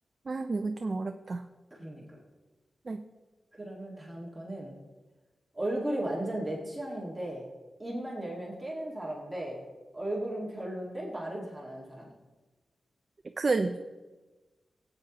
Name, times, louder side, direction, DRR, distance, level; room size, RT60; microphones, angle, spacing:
voice 1, 0.3-1.4 2.9-3.0 13.4-13.8, right 3 dB, 35° right, 6 dB, 0.4 m, -30 dB
voice 2, 1.7-2.0 3.5-4.8 5.5-7.5 7.8-9.6 9.9-12.1, right 1 dB, 10° right, -4 dB, 1.8 m, -36 dB
17.5 x 8.7 x 2.9 m, 1.2 s
wide cardioid pair, 145°, 0 cm